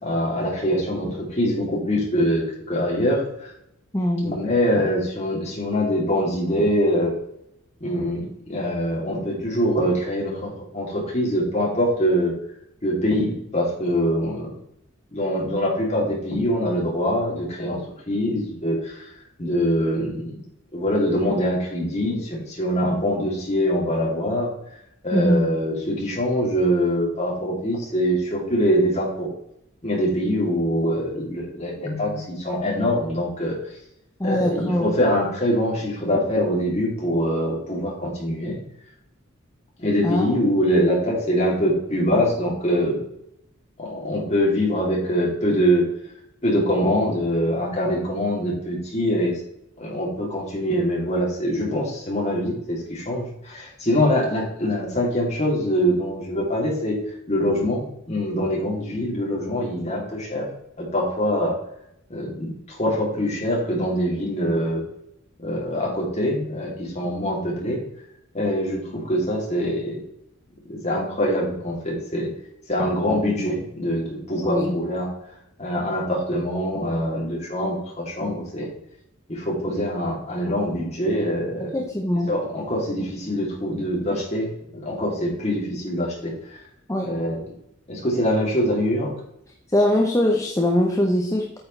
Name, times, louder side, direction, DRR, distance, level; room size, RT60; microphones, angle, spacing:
voice 1, 0.0-3.5 4.2-7.1 7.8-8.2 8.5-12.3 12.8-14.6 15.1-17.8 18.1-19.0 19.4-20.4 20.7-24.5 25.0-29.3 29.8-33.6 34.2-38.6 39.8-43.0 43.8-45.8 46.4-49.4 49.8-57.0 57.3-60.5 60.8-61.5 62.1-64.8 65.4-67.8 68.3-70.0 70.7-72.3 72.7-75.1 75.6-78.7 79.3-81.7 82.3-86.3 87.0-87.4 87.9-89.1, equal, 35° left, -3 dB, 2.9 m, -24 dB
voice 2, 3.9-4.3 25.1-25.5 31.8-32.2 34.2-34.9 40.0-40.3 74.4-74.8 81.6-82.4 86.9-87.2 89.7-91.6, left 1 dB, 15° left, 0 dB, 0.8 m, -22 dB
8.9 x 6.8 x 3.3 m, 0.78 s
head